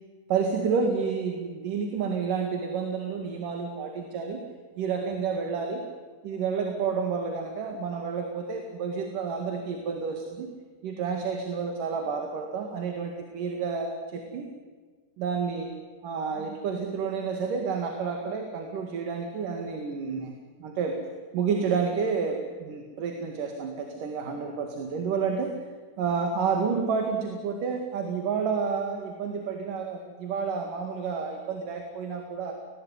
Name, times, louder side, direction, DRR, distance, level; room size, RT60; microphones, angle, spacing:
voice 1, 0.3-4.4 4.8-5.9 6.2-10.5 10.8-14.5 15.2-15.7 16.0-20.3 20.6-21.0 21.3-25.7 26.0-32.5, right 5 dB, 60° right, 4 dB, 3.5 m, -30 dB
29.5 x 19.5 x 9.6 m, 1.5 s
omnidirectional pair, 4.7 m